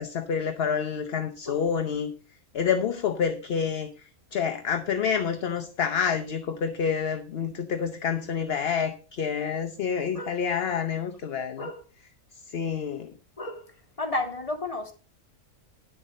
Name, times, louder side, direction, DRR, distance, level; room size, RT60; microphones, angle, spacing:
voice 1, 0.0-2.1 2.5-11.7 12.5-13.1, left 7 dB, 50° left, 0.9 m, -28 dB
voice 2, 14.0-14.9, left 2 dB, 25° left, 1.9 m, -32 dB
10.5 x 7.1 x 5.3 m
omnidirectional pair, 1.6 m